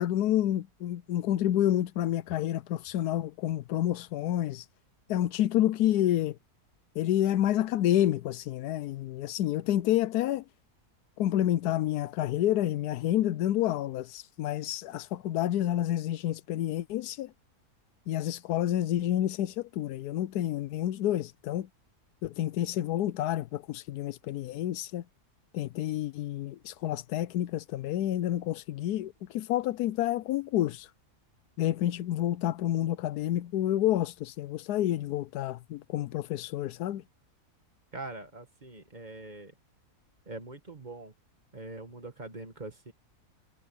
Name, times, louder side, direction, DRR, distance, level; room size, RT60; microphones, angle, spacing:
voice 1, 0.0-4.6 5.1-6.4 7.0-10.4 11.2-17.3 18.1-21.7 22.2-25.0 25.5-30.9 31.6-37.0, left 12 dB, 80° left, 1.1 m, -29 dB
voice 2, 37.9-39.5 40.2-41.1 41.5-42.9, right 2 dB, 30° right, 1.7 m, -43 dB
omnidirectional pair, 1.6 m